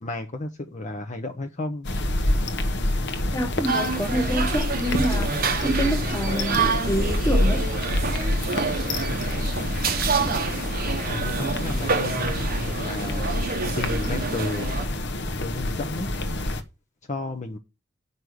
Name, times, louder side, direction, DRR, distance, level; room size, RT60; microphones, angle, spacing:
voice 1, 0.0-1.9 11.0-13.3 13.7-14.8 15.3-16.1 17.1-17.6, left 2 dB, 35° left, 0.8 m, -32 dB
sound 1, 1.8-16.6, left 1 dB, 55° left, 1.1 m, -27 dB
voice 2, 3.3-5.3 5.6-7.7, right 1 dB, 15° left, 1.2 m, -27 dB
sound 2, 3.7-14.9, right 4 dB, 45° right, 1.0 m, -28 dB
8.1 x 5.5 x 6.3 m
head